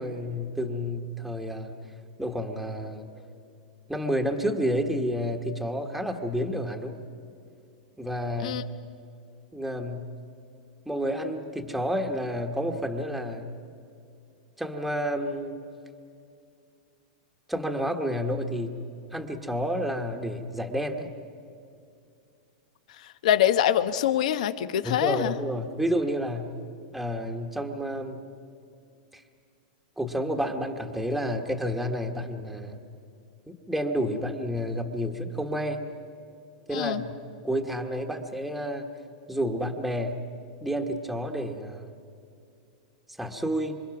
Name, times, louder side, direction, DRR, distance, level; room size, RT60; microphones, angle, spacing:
voice 1, 0.0-1.7 2.2-3.1 3.9-7.0 8.0-8.6 9.5-10.1 10.9-13.5 14.6-15.6 17.5-18.8 19.1-21.1 24.8-26.5 26.9-28.2 29.1-29.2 30.0-32.8 33.7-35.9 36.7-37.2 37.4-38.9 39.3-40.2 40.6-41.9 43.2-43.8, equal, ahead, 3 dB, 1.3 m, -30 dB
voice 2, 23.2-25.3 36.7-37.0, left 11 dB, 70° left, 13 dB, 1.0 m, -24 dB
27.0 x 25.0 x 6.0 m, 2.5 s
supercardioid pair, 155°, 4 cm